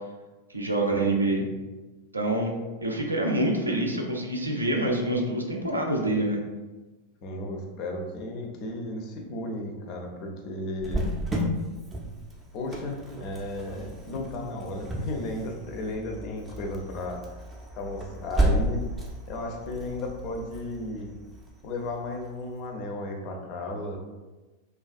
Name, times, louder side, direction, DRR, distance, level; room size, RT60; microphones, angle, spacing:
voice 1, 0.5-1.4 2.1-2.5 2.8-6.4, right 1 dB, 80° right, 1 dB, 0.4 m, -26 dB
voice 2, 7.2-11.1 12.5-17.4 17.8-18.8 19.3-21.1 21.6-24.0, left 1 dB, 40° left, 1 dB, 0.4 m, -34 dB
Cricket, 10.8-22.3, right 1 dB, 15° right, 0.4 m, -33 dB
2.3 x 2.3 x 2.3 m, 1.2 s
figure-of-eight pair, 90°, 0 cm